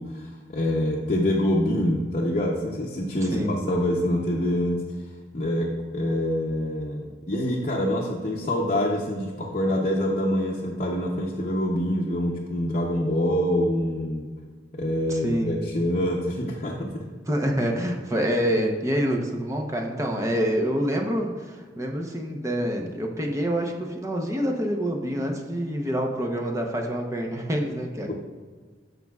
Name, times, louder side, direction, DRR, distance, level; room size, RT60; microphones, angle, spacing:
voice 1, 0.0-4.8 5.3-14.3 14.7-17.0 28.1-28.2, left 1 dB, 40° left, -3 dB, 0.8 m, -25 dB
voice 2, 3.2-3.6 15.1-15.6 17.3-28.1, equal, 20° right, 1 dB, 0.8 m, -27 dB
13.5 x 5.3 x 2.4 m, 1.5 s
head